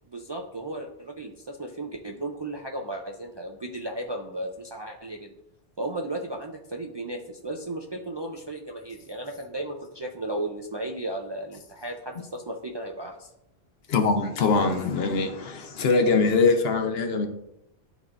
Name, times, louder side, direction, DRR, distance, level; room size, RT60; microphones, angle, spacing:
voice 1, 0.1-5.3 5.8-13.3, right 1 dB, 40° right, 1 dB, 0.3 m, -35 dB
voice 2, 13.9-17.3, left 4 dB, 75° left, 6 dB, 1.0 m, -22 dB
11.0 x 3.6 x 2.5 m, 0.81 s
omnidirectional pair, 1.1 m